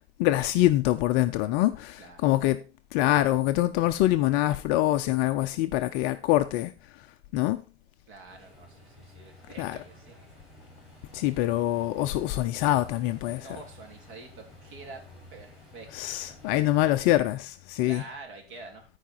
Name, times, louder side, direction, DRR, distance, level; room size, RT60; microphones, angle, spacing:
voice 1, 0.2-2.6 2.9-6.7 7.3-7.6 9.6-9.8 11.1-13.5 15.9-18.0, left 15 dB, 30° left, 0.4 m, -25 dB
voice 2, 2.0-2.3 8.1-10.2 13.4-15.0 15.3-16.8 17.8-18.9, right 3 dB, 50° right, 3.3 m, -47 dB
sound 1, 8.3-16.9, left 1 dB, ahead, 6.2 m, -52 dB
13.5 x 4.9 x 4.4 m
hypercardioid pair, 120°, 32 cm